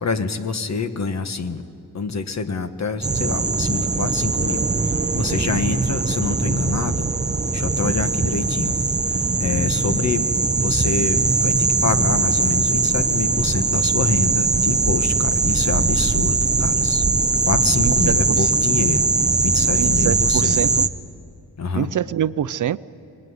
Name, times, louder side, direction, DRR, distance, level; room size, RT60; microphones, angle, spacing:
voice 1, 0.0-1.6 1.9-4.6 5.1-7.1 7.5-8.7 9.1-10.3 10.6-17.0 17.5-19.1 19.4-20.6 21.6-21.9, left 4 dB, 45° left, 9 dB, 1.4 m, -26 dB
sound 1, 3.0-20.9, right 4 dB, 20° right, 0.7 m, -20 dB
sound 2, 4.2-12.2, left 5 dB, 15° left, 3.7 m, -44 dB
voice 2, 17.8-18.5 19.8-20.9 21.7-22.8, right 10 dB, 50° right, 16 dB, 0.6 m, -25 dB
25.0 x 22.0 x 9.7 m, 2.5 s
wide cardioid pair, 130°, 39 cm